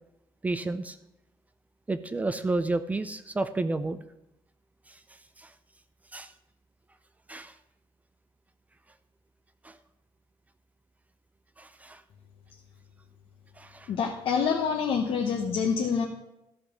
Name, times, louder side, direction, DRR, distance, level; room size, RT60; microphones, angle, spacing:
voice 1, 0.4-1.0 1.9-4.0 6.1-6.3 7.3-7.5 9.6-9.7 11.6-12.0 13.6-13.9, right 2 dB, 15° right, 11 dB, 0.4 m, -31 dB
voice 2, 13.9-16.0, left 6 dB, 65° left, 0 dB, 1.0 m, -26 dB
13.5 x 5.2 x 6.0 m, 0.86 s
cardioid pair, 170°, 10 cm